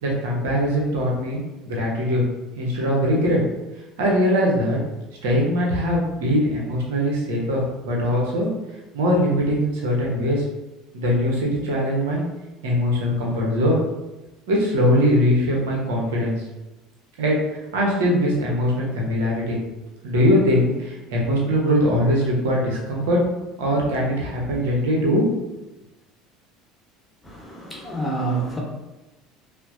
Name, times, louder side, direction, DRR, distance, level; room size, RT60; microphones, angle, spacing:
voice 1, 0.0-1.4 1.6-2.2 2.6-3.4 4.0-4.8 5.2-8.5 8.9-10.4 10.9-12.2 12.6-13.8 14.5-16.4 17.2-19.6 20.0-23.2 23.6-25.2 25.5-25.6, equal, 65° right, -3 dB, 0.9 m, -21 dB
voice 2, 27.2-28.6, right 3 dB, 10° left, -2 dB, 1.1 m, -28 dB
5.7 x 2.2 x 2.6 m, 1.0 s
figure-of-eight pair, 65°, 0 cm